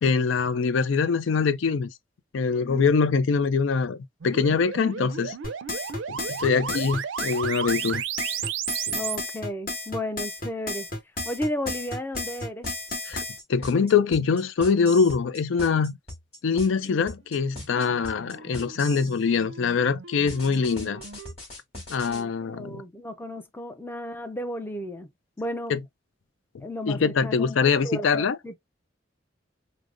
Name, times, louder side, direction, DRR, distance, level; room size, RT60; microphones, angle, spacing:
voice 1, 0.0-1.9 2.3-4.0 4.2-5.4 6.1-8.0 8.9-9.0 13.1-13.2 13.5-16.0 16.4-21.0 21.9-22.8 25.7-25.8 26.9-28.4, left 5 dB, 90° left, 0.4 m, -23 dB
sound 1, 4.2-9.2 17.4-21.3, right 8 dB, 80° right, 0.4 m, -35 dB
sound 2, 5.4-13.4, left 2 dB, 50° left, 1.6 m, -33 dB
voice 2, 8.9-10.9 11.3-12.7 16.7-17.0 22.1-25.1 25.4-25.8 26.6-27.6 27.8-28.6, left 1 dB, 10° left, 0.4 m, -33 dB
sound 3, 11.2-19.2 20.3-22.2, left 1 dB, 30° left, 2.8 m, -40 dB
4.9 x 2.0 x 2.4 m
head